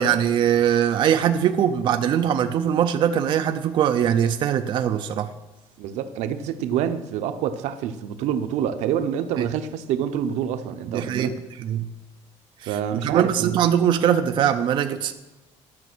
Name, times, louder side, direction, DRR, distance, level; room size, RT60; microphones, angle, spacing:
voice 1, 0.0-5.3 9.4-9.5 10.9-11.3 11.6-11.9 12.6-12.8 13.0-15.1, right 9 dB, 45° right, 0.5 m, -21 dB
voice 2, 5.8-11.3 12.7-13.6, right 9 dB, 85° right, 0.7 m, -27 dB
11.0 x 6.4 x 6.1 m
cardioid pair, 175°, 11 cm